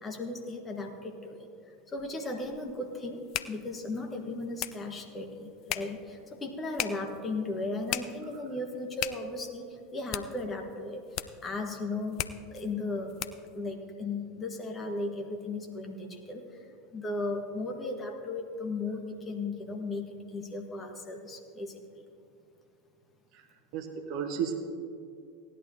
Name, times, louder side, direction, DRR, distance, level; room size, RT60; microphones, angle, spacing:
voice 1, 0.0-1.5 1.9-3.2 3.5-11.0 11.4-12.2 12.5-13.1 13.5-16.5 16.9-22.0, left 2 dB, 20° left, 3 dB, 1.6 m, -36 dB
sound 1, 2.0-13.6, left 13 dB, 45° left, 0.4 m, -40 dB
voice 2, 23.7-24.5, right 7 dB, 50° right, 6 dB, 1.1 m, -33 dB
17.5 x 11.0 x 2.9 m, 2.5 s
figure-of-eight pair, 80°, 0 cm